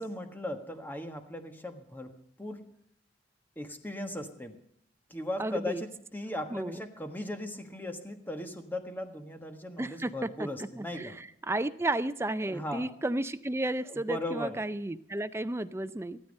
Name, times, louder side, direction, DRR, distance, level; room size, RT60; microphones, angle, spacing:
voice 1, 0.0-2.7 3.6-4.6 5.1-11.2 12.4-12.9 13.9-14.6, left 1 dB, 10° left, 6 dB, 1.4 m, -38 dB
voice 2, 5.4-5.8 6.5-6.8 9.8-10.3 10.8-16.2, right 2 dB, 15° right, 13 dB, 0.5 m, -33 dB
15.0 x 13.0 x 5.3 m, 0.72 s
head